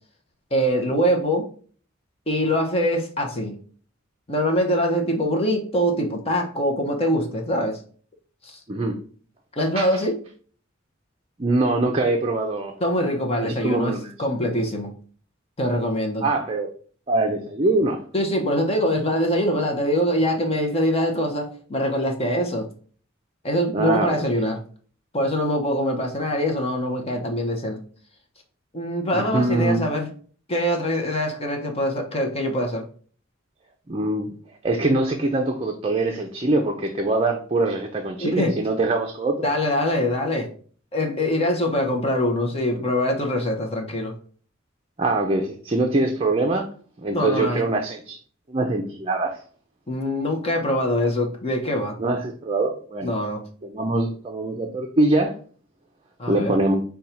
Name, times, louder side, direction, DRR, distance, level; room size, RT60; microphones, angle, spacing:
voice 1, 0.5-1.5 2.3-3.5 4.3-7.8 8.4-8.6 9.6-10.2 12.8-14.9 15.6-16.3 18.1-22.7 23.4-24.6 25.1-27.8 28.7-30.1 30.5-32.8 38.2-38.6 39.4-40.5 40.9-44.1 47.1-47.7 49.9-52.0 53.0-53.4 56.2-56.5, equal, 30° left, 2 dB, 0.7 m, -23 dB
voice 2, 11.4-12.7 13.4-14.1 16.2-16.7 17.1-18.0 23.7-24.5 29.1-29.8 33.9-34.3 34.6-39.5 45.0-46.7 47.0-48.2 48.5-49.4 52.0-53.1 53.6-55.3 56.3-56.8, right 2 dB, 30° right, 3 dB, 0.5 m, -23 dB
5.3 x 2.3 x 4.3 m, 0.43 s
head